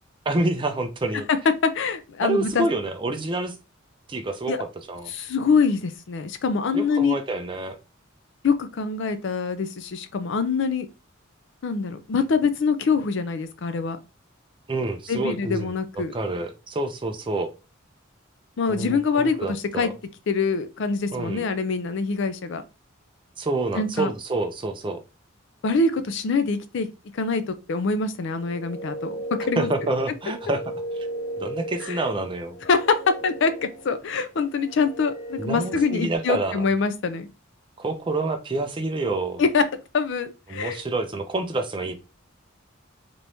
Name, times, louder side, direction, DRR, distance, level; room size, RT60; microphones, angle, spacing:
voice 1, 0.3-1.3 2.2-3.5 4.1-4.5 4.9-5.1 6.7-7.8 14.7-17.5 18.7-19.9 21.1-21.4 23.4-25.0 29.6-30.6 31.4-32.6 35.4-36.7 37.8-39.4 40.5-41.9, right 2 dB, 25° right, 0.5 m, -27 dB
voice 2, 1.6-2.7 4.5-4.6 5.1-7.2 8.4-10.9 11.6-14.0 15.1-16.1 18.6-19.9 20.3-22.6 23.7-24.1 25.6-29.2 29.5-29.7 31.8-32.0 32.7-37.3 39.4-39.6 39.9-40.8, left 4 dB, 65° left, 0.4 m, -24 dB
sound 1, 28.3-36.2, right 1 dB, 40° left, 1.2 m, -36 dB
3.4 x 3.0 x 2.6 m
head